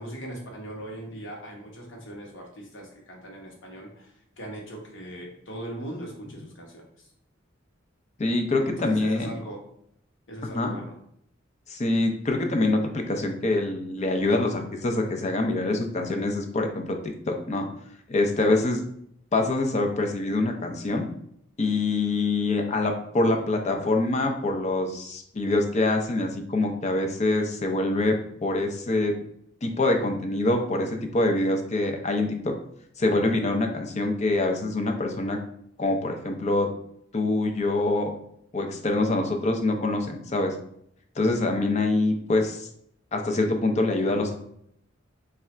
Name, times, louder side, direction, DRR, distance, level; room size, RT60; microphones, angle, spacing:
voice 1, 0.0-7.1 8.6-9.6 10.3-11.0, right 1 dB, 65° left, -1 dB, 1.1 m, -40 dB
voice 2, 8.2-9.3 10.5-10.7 11.7-17.6 18.1-18.8 19.3-21.1 21.6-28.2 28.4-29.1 29.6-32.5 33.0-35.4 35.8-36.7 37.1-38.1 38.5-40.5 41.2-42.7 43.1-44.3, left 2 dB, 35° left, 4 dB, 0.5 m, -25 dB
3.3 x 2.4 x 4.2 m, 0.70 s
head